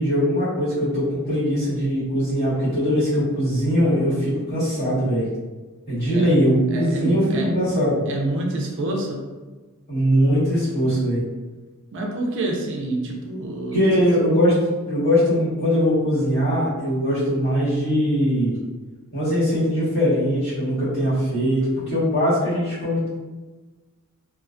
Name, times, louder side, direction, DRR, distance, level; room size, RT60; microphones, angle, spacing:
voice 1, 0.0-5.2 5.9-8.0 9.9-11.2 13.7-14.6 14.9-18.6 19.1-23.1, equal, 50° left, -11 dB, 1.4 m, -21 dB
voice 2, 6.7-7.5 8.1-9.2 11.9-13.8, right 2 dB, 55° right, 0 dB, 0.4 m, -27 dB
2.5 x 2.2 x 2.4 m, 1.3 s
head